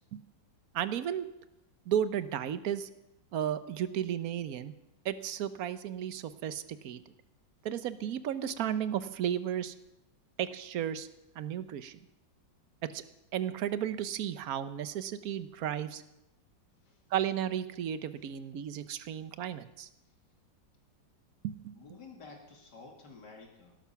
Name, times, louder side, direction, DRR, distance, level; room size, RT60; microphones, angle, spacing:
voice 1, 0.7-1.3 1.9-2.9 3.3-4.7 5.0-7.0 7.6-9.7 10.4-11.1 11.4-12.0 12.8-13.0 13.3-16.0 17.1-19.9 21.4-21.7, right 10 dB, 60° right, 13 dB, 1.2 m, -34 dB
voice 2, 21.7-23.8, left 4 dB, 65° left, 1 dB, 2.8 m, -51 dB
18.0 x 12.0 x 5.7 m, 0.89 s
omnidirectional pair, 2.0 m